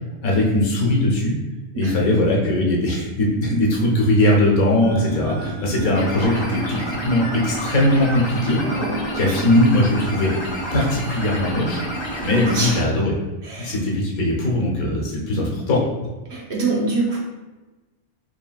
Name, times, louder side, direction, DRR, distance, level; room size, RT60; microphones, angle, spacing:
voice 1, 0.2-1.3 1.7-8.6 9.1-10.3 10.7-11.8 12.2-13.1 13.6-15.8, left 1 dB, 75° left, -3 dB, 1.4 m, -20 dB
sound 1, 4.8-12.8, right 1 dB, 40° left, 0.3 m, -29 dB
voice 2, 8.5-9.0 9.4-9.5 12.4-12.8 13.4-13.8 16.3-17.2, right 3 dB, 55° right, -3 dB, 0.9 m, -25 dB
4.9 x 3.2 x 2.3 m, 1.2 s
omnidirectional pair, 1.5 m